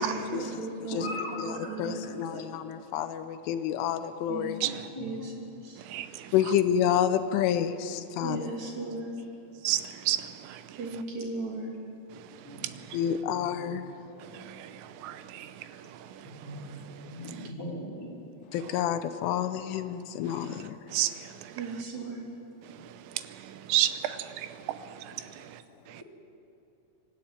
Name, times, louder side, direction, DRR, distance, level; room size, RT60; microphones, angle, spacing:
voice 1, 0.0-1.1 1.5-2.5 4.3-4.5 5.0-5.8 8.2-9.3 10.8-11.8 21.5-22.3, right 3 dB, 40° right, -1 dB, 3.8 m, -36 dB
voice 2, 0.9-1.7 4.6-5.1 12.4-12.7 13.1-13.7 16.2-16.6 17.0-18.2, left 1 dB, 5° left, -5 dB, 3.9 m, -39 dB
voice 3, 1.8-4.6 6.3-8.5 12.9-13.8 18.5-20.8, left 9 dB, 80° left, 10 dB, 3.1 m, -28 dB
voice 4, 5.8-6.3 9.7-10.8 12.1-13.0 14.2-16.9 20.3-20.6 20.9-21.6 22.6-25.6 25.9-26.0, right 13 dB, 85° right, 11 dB, 3.4 m, -34 dB
25.0 x 13.5 x 9.4 m, 2.8 s
omnidirectional pair, 5.9 m